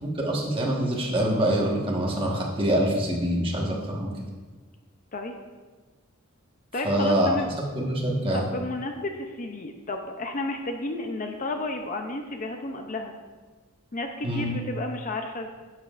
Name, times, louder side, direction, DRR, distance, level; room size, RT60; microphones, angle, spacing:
voice 1, 0.0-4.1 6.8-7.4 7.7-8.4 14.2-14.6, right 1 dB, 25° right, -2 dB, 1.4 m, -25 dB
voice 2, 6.7-7.5 8.3-13.1 13.9-15.5, left 2 dB, 35° left, 4 dB, 0.6 m, -32 dB
12.0 x 7.4 x 2.5 m, 1.3 s
head